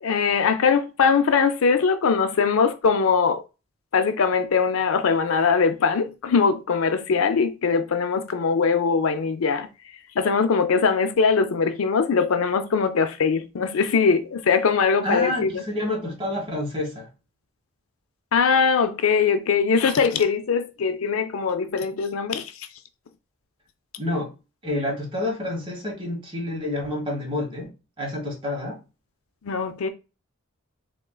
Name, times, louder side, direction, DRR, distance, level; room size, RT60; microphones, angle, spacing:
voice 1, 0.0-3.4 3.9-9.7 10.2-15.6 18.3-22.5 29.4-29.9, left 5 dB, 85° left, 0.5 m, -21 dB
voice 2, 15.0-17.1 24.0-24.3 24.6-27.7 28.0-28.8, left 1 dB, 25° right, 1.4 m, -28 dB
3.7 x 3.6 x 2.3 m
head